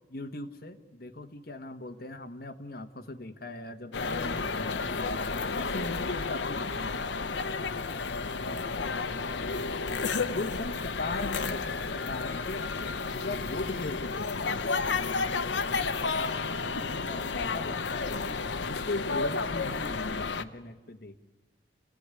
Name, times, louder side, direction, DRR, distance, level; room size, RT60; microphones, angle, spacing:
voice 1, 0.1-7.5 7.9-9.9 10.3-14.7 15.8-21.1, left 2 dB, 55° left, 6 dB, 1.4 m, -40 dB
sound 1, 3.9-20.4, left 4 dB, 80° left, 0.8 m, -32 dB
27.5 x 16.5 x 9.8 m, 1.2 s
head